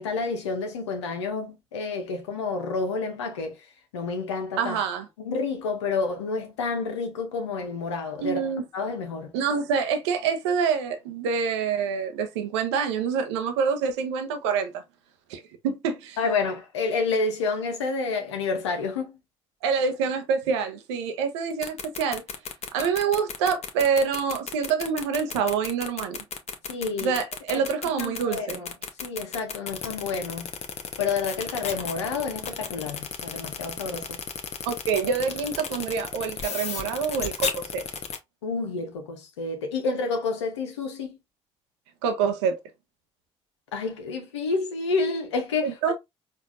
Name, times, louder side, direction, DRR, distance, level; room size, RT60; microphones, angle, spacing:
voice 1, 0.0-3.6 3.9-4.8 5.2-8.4 8.7-9.3 16.2-19.2 26.7-27.2 27.5-27.6 28.0-28.7 29.0-30.5 31.0-34.2 38.4-41.2 43.7-45.7, left 4 dB, 90° left, 0.7 m, -29 dB
voice 2, 4.6-5.1 8.2-8.6 9.3-14.7 15.3-16.2 19.6-22.2 22.7-26.2 27.0-28.6 34.7-37.8 42.0-42.6 45.6-45.9, right 6 dB, 80° right, 0.6 m, -26 dB
sound 1, 21.5-38.2, left 7 dB, 50° left, 0.8 m, -33 dB
4.6 x 2.5 x 2.4 m
hypercardioid pair, 50°, 14 cm